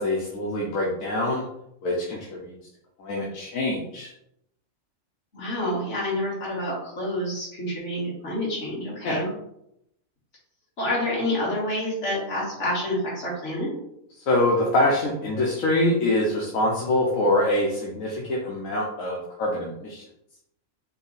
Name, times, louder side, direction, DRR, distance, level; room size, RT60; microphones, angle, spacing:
voice 1, 0.0-1.5 1.8-2.6 3.0-4.1 9.0-9.2 14.3-20.0, left 1 dB, 75° left, -3 dB, 1.2 m, -24 dB
voice 2, 5.3-9.3 10.8-13.7, left 1 dB, 55° left, -5 dB, 2.2 m, -28 dB
4.4 x 3.0 x 3.9 m, 0.78 s
omnidirectional pair, 1.4 m